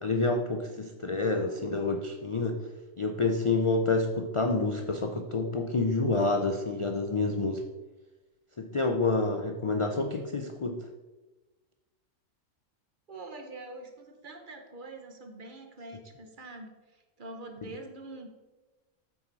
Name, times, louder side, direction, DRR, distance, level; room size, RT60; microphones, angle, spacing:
voice 1, 0.0-2.6 3.0-7.6 8.6-10.9, left 3 dB, 50° left, 4 dB, 0.3 m, -28 dB
voice 2, 13.1-18.3, right 2 dB, 45° right, 4 dB, 1.0 m, -45 dB
8.8 x 6.2 x 4.0 m, 1.2 s
omnidirectional pair, 1.4 m